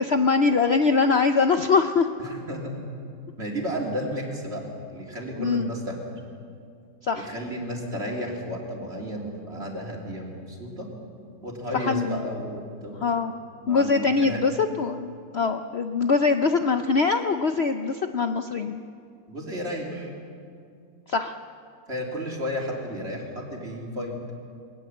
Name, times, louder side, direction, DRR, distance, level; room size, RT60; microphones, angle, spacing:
voice 1, 0.0-2.1 5.4-5.7 7.0-7.3 11.7-12.2 13.0-13.3 13.7-18.8 21.1-21.4, left 4 dB, 85° left, 7 dB, 0.5 m, -23 dB
voice 2, 2.2-2.9 3.4-6.0 7.1-10.9 11.4-13.1 13.6-14.4 19.3-20.1 21.9-24.1, equal, 35° right, -1 dB, 3.3 m, -33 dB
21.5 x 19.0 x 7.8 m, 2.3 s
omnidirectional pair, 2.1 m